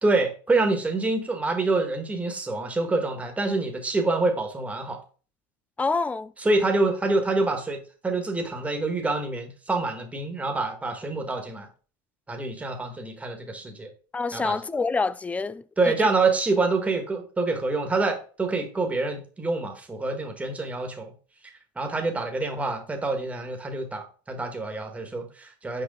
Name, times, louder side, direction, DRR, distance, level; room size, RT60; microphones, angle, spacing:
voice 1, 0.0-5.0 6.4-11.7 12.3-13.9 14.3-14.6 15.8-21.1 21.7-25.8, right 3 dB, 10° right, 1.6 m, -26 dB
voice 2, 5.8-6.3 14.1-15.6, left 4 dB, 15° left, 0.4 m, -26 dB
6.6 x 4.8 x 3.7 m
supercardioid pair, 115°, 11 cm